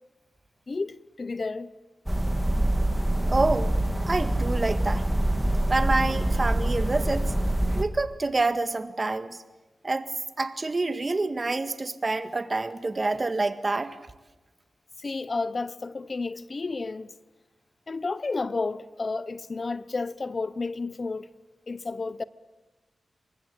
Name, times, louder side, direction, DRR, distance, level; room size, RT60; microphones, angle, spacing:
voice 1, 0.7-1.7 15.0-17.1 17.9-21.3 21.7-22.2, left 3 dB, 45° left, 0.8 m, -31 dB
sound 1, 2.1-7.8, right 1 dB, 5° right, 2.2 m, -25 dB
voice 2, 3.3-3.8 4.1-5.1 5.7-7.3 7.8-9.4 9.8-14.0, right 3 dB, 35° right, 1.9 m, -27 dB
27.5 x 24.0 x 8.8 m
cardioid pair, 75°, 0 cm